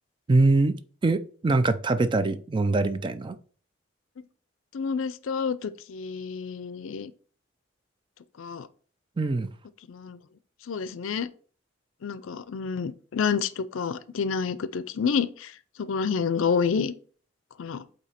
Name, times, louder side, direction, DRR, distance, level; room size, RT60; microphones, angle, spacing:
voice 1, 0.3-0.8 1.0-3.3 9.2-9.5, right 2 dB, 25° right, 0.3 m, -23 dB
voice 2, 4.7-7.1 8.4-8.7 9.9-10.2 10.7-11.3 12.0-15.5 15.8-16.9 17.6-17.8, left 6 dB, 75° left, 0.4 m, -29 dB
8.2 x 2.8 x 4.3 m
head